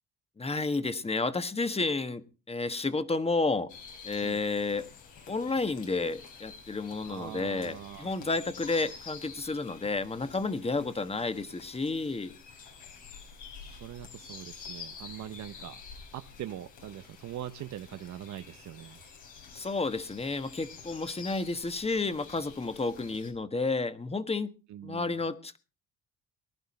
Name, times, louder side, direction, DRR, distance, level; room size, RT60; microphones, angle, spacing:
voice 1, 0.4-3.7 4.0-4.9 5.3-12.3 19.5-24.5 24.8-25.6, left 3 dB, 20° left, 11 dB, 1.3 m, -31 dB
sound 1, 3.7-23.3, left 5 dB, 85° left, 4.7 m, -49 dB
voice 2, 7.0-8.4 13.6-15.8 16.1-19.0 24.7-25.3, right 11 dB, 70° right, 10 dB, 0.8 m, -42 dB
20.0 x 11.0 x 4.3 m, 0.33 s
cardioid pair, 90°, 30 cm